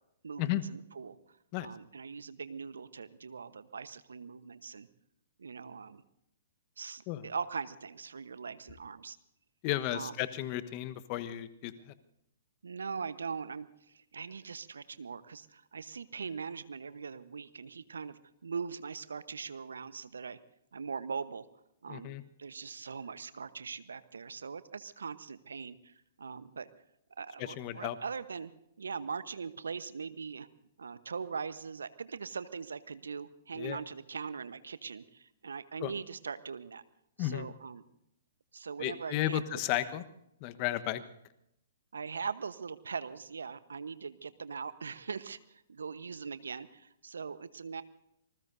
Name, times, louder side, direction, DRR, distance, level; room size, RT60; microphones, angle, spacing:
voice 1, 0.2-1.2 1.6-4.9 5.4-6.0 6.8-9.2 9.9-10.1 12.6-13.7 13.9-20.4 20.7-21.5 21.8-22.1 22.4-26.7 27.2-28.5 28.8-30.5 30.8-36.8 37.2-37.8 38.5-39.6 41.9-47.8, right 5 dB, 75° right, 14 dB, 1.0 m, -41 dB
voice 2, 9.6-11.9 21.9-22.2 27.4-27.9 33.6-33.8 35.8-35.9 37.2-37.5 38.8-40.0 40.4-41.0, left 14 dB, 40° left, 12 dB, 1.2 m, -34 dB
27.0 x 20.0 x 2.7 m, 0.78 s
figure-of-eight pair, 120°, 0 cm